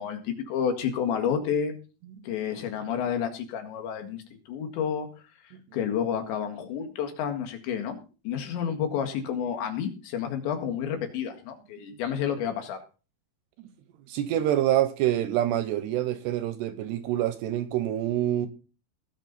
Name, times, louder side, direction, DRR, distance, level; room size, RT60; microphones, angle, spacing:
voice 1, 0.0-1.7 2.2-5.1 5.7-8.0 8.3-12.8, left 8 dB, 75° left, 4.0 m, -30 dB
voice 2, 14.1-18.5, right 12 dB, 75° right, 2.7 m, -26 dB
20.0 x 6.8 x 4.1 m
omnidirectional pair, 5.4 m